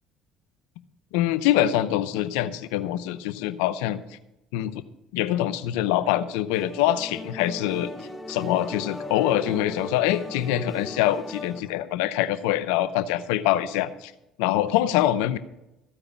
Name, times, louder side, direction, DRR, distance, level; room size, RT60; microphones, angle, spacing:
voice 1, 1.1-4.2 4.5-4.8 5.1-7.9 8.3-14.1 14.4-15.4, left 13 dB, 80° left, 12 dB, 0.6 m, -24 dB
sound 1, 6.5-11.6, left 1 dB, 5° left, 1.1 m, -37 dB
14.5 x 4.9 x 8.2 m, 0.91 s
hypercardioid pair, 70°, 0 cm